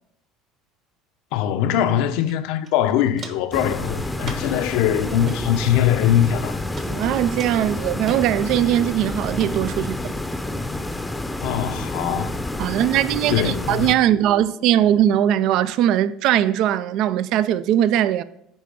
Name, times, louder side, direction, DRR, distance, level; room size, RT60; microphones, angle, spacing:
voice 1, 1.3-6.6 11.4-12.4 13.3-13.9, left 10 dB, 75° left, 0.7 m, -22 dB
Walk footsteps, 2.3-2.4 2.6-3.5 4.2-4.6 5.1-5.4 6.1-6.4 6.8-6.9 7.4-8.2 8.7-9.0 9.4-9.5 10.0-10.1, right 4 dB, 40° right, 1.1 m, -38 dB
sound 1, 3.5-14.0, left 2 dB, 5° left, 0.6 m, -29 dB
voice 2, 6.8-10.1 12.6-18.2, right 11 dB, 60° right, 0.4 m, -20 dB
10.0 x 3.4 x 6.7 m
cardioid pair, 125°, 0 cm